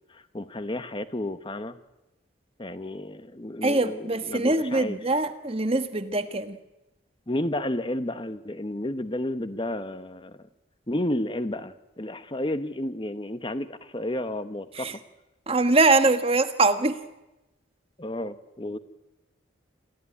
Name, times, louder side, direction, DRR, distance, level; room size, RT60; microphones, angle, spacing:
voice 1, 0.1-1.8 2.6-4.0 4.3-5.0 7.3-10.4 10.9-14.9 18.0-18.8, left 1 dB, 25° left, 11 dB, 1.0 m, -31 dB
voice 2, 3.6-6.6 14.7-15.0 15.5-17.0, right 2 dB, 30° right, 10 dB, 1.3 m, -23 dB
28.0 x 15.5 x 9.8 m, 0.99 s
head